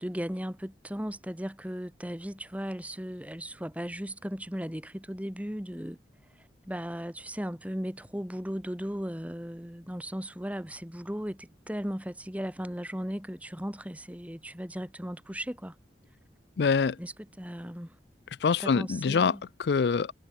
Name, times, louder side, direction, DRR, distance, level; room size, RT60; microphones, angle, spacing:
voice 1, 0.0-6.0 6.7-15.7 17.0-17.9 18.6-19.4, equal, 10° right, 2.1 m, -36 dB
voice 2, 16.6-17.0 18.4-20.1, left 5 dB, 70° left, 0.4 m, -25 dB
head